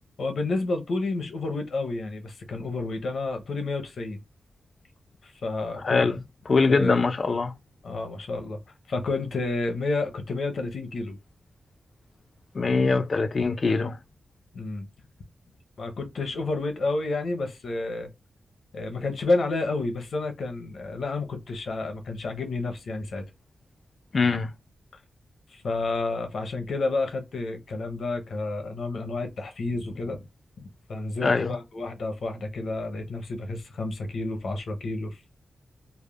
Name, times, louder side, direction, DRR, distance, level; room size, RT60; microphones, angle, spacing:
voice 1, 0.2-4.2 5.2-6.1 6.6-7.0 7.8-8.6 8.9-11.2 14.5-14.9 15.8-18.1 18.7-23.2 25.5-30.2 30.9-35.2, left 3 dB, 70° left, 0.7 m, -30 dB
voice 2, 5.8-6.2 6.5-7.5 12.5-14.0 24.1-24.5 31.2-31.6, left 4 dB, 50° left, 0.3 m, -23 dB
3.3 x 2.1 x 2.3 m
wide cardioid pair, 100°, 0 cm